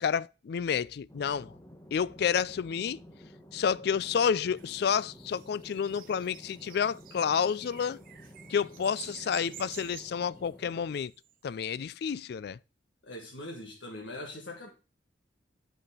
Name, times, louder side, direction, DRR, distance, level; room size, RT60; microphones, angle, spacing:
voice 1, 0.0-1.5 1.9-3.0 3.5-8.0 8.5-11.1 11.4-12.6, left 7 dB, 60° left, 0.3 m, -30 dB
sound 1, 1.1-10.8, equal, 15° left, 1.0 m, -52 dB
sound 2, 4.6-11.3, right 10 dB, 50° right, 0.7 m, -50 dB
voice 2, 13.0-14.7, left 1 dB, 85° left, 1.5 m, -41 dB
8.2 x 5.5 x 4.9 m
head